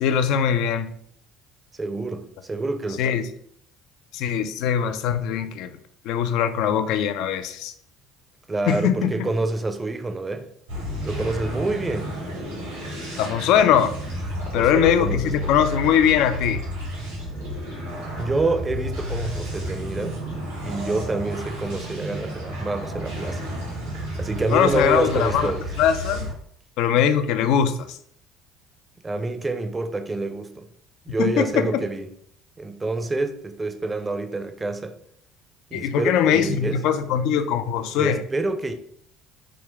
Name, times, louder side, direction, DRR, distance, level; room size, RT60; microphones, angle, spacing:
voice 1, 0.0-0.9 3.0-3.3 4.1-5.7 6.1-7.7 8.7-9.3 13.2-14.0 14.5-16.6 24.5-25.5 25.8-26.3 26.8-28.0 31.2-31.8 35.7-38.2, left 8 dB, 65° left, 0.3 m, -21 dB
voice 2, 1.8-3.2 8.5-10.5 11.0-12.1 14.4-15.6 18.2-20.2 20.6-23.4 23.9-25.7 29.0-30.7 31.1-32.1 32.6-35.0 35.7-36.8 37.9-38.7, right 2 dB, 25° right, 0.5 m, -27 dB
sound 1, 10.7-26.3, equal, 90° right, 1.5 m, -31 dB
3.7 x 2.2 x 3.4 m
hypercardioid pair, 60°, 0 cm